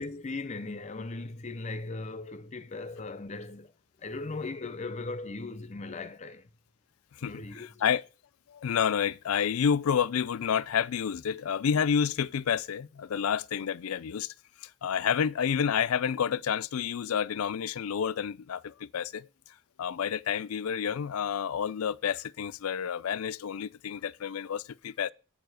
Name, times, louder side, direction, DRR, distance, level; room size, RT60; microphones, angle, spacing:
voice 1, 0.0-3.7 4.0-6.5 7.2-7.8, left 3 dB, 35° left, 0.5 m, -38 dB
voice 2, 7.2-8.0 8.5-14.3 14.6-19.3 19.8-25.1, left 7 dB, 85° left, 0.4 m, -29 dB
9.0 x 4.7 x 7.7 m
head